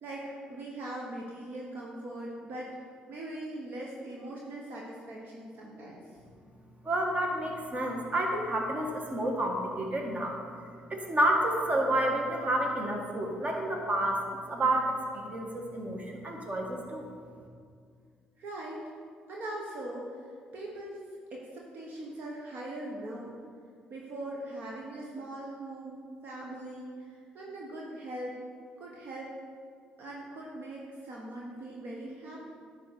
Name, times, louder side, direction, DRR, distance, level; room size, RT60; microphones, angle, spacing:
voice 1, 0.0-2.7 3.1-6.0 18.4-18.8 19.3-20.2 20.5-21.0 21.3-23.3 23.9-28.4 28.8-29.3 30.0-32.4, right 1 dB, 60° right, -3 dB, 1.2 m, -41 dB
voice 2, 6.8-10.3 10.9-17.0, right 1 dB, 40° right, 1 dB, 1.7 m, -30 dB
10.0 x 3.9 x 6.8 m, 2.2 s
hypercardioid pair, 50°, 4 cm